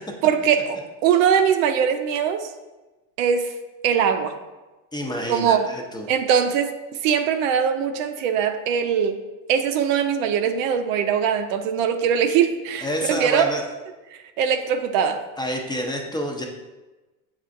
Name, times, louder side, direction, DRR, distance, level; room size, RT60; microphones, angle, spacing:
voice 1, 0.2-2.5 3.2-3.5 3.8-4.3 5.3-5.7 6.1-6.7 7.0-9.2 9.5-13.5 14.4-15.2, right 8 dB, 75° right, 7 dB, 0.6 m, -21 dB
voice 2, 4.9-6.1 12.8-13.6 15.4-16.4, equal, 10° left, 1 dB, 0.5 m, -28 dB
7.1 x 2.4 x 2.5 m, 1.1 s
supercardioid pair, 90°, 39 cm